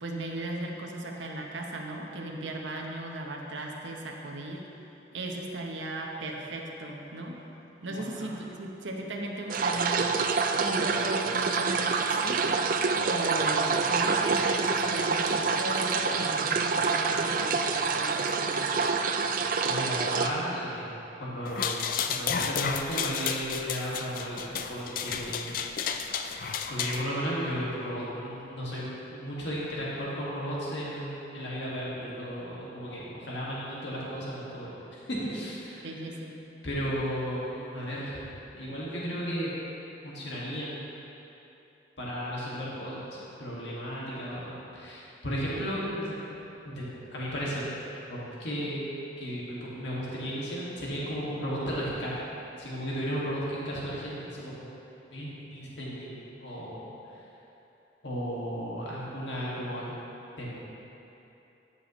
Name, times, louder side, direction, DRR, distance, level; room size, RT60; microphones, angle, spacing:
voice 1, 0.0-4.6 5.1-7.4 7.8-10.1 10.6-12.5 13.0-18.7 35.8-36.4, right 1 dB, 90° right, 0 dB, 0.9 m, -36 dB
voice 2, 7.9-8.3 19.6-20.9 21.2-21.8 22.1-25.6 26.7-36.0 36.6-39.5 40.0-40.9 42.0-46.2 46.7-47.7 48.1-48.8 49.2-52.2 52.6-54.6 55.1-56.7 58.0-59.9 60.4-60.6, equal, 75° left, -7 dB, 1.9 m, -34 dB
sound 1, 9.5-20.3, right 4 dB, 45° right, 0.4 m, -27 dB
sound 2, 21.4-27.0, left 7 dB, 50° left, 0.4 m, -32 dB
13.5 x 6.8 x 3.1 m, 3.0 s
head